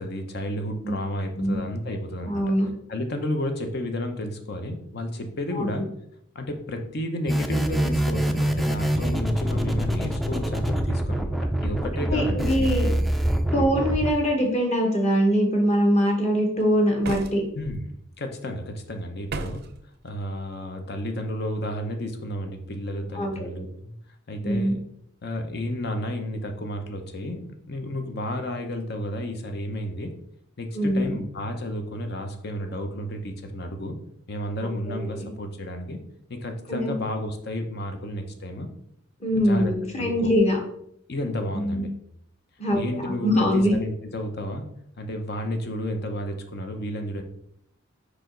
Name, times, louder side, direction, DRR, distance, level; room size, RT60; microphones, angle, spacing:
voice 1, 0.0-2.4 2.9-5.9 6.3-12.7 13.6-13.7 17.5-17.9 18.2-19.6 20.0-23.9 24.3-24.8 25.2-30.1 30.6-34.0 34.3-36.0 36.3-38.7 39.4-39.7 40.0-40.3 41.1-41.9 42.7-44.7 45.0-47.2, left 1 dB, 55° left, 5 dB, 0.8 m, -32 dB
voice 2, 2.2-2.7 5.5-5.8 12.1-12.9 13.5-17.4 23.1-23.5 24.4-24.7 30.7-31.2 34.9-35.3 36.7-36.9 39.2-40.6 41.5-41.8 42.6-43.7, equal, 35° left, 1 dB, 1.3 m, -23 dB
sound 1, 7.3-14.1, right 1 dB, ahead, 0.4 m, -25 dB
sound 2, 17.0-17.8 19.3-19.8, right 3 dB, 55° right, 0.5 m, -33 dB
5.0 x 4.9 x 3.8 m, 0.72 s
head